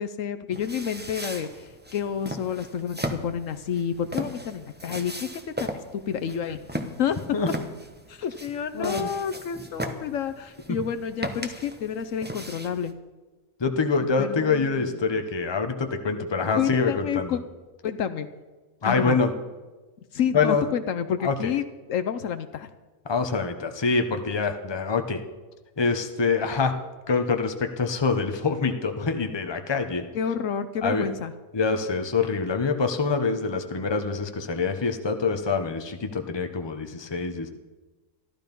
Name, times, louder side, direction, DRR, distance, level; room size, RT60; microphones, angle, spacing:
voice 1, 0.0-1.5 1.9-6.6 7.0-7.2 8.1-13.0 14.2-15.2 16.6-17.4 17.8-18.3 18.8-19.2 20.1-21.6 21.9-22.7 30.1-31.3, left 8 dB, 70° left, 9 dB, 1.1 m, -29 dB
sound 1, 0.5-12.9, right 1 dB, 10° right, 0.9 m, -37 dB
voice 2, 8.7-9.1 10.7-10.8 13.6-17.4 18.8-19.3 20.3-20.6 21.2-21.5 23.1-25.2 25.8-26.7 27.1-30.0 30.8-31.1 31.5-37.5, left 4 dB, 20° left, 6 dB, 0.9 m, -25 dB
14.0 x 12.5 x 5.4 m, 1.2 s
omnidirectional pair, 1.5 m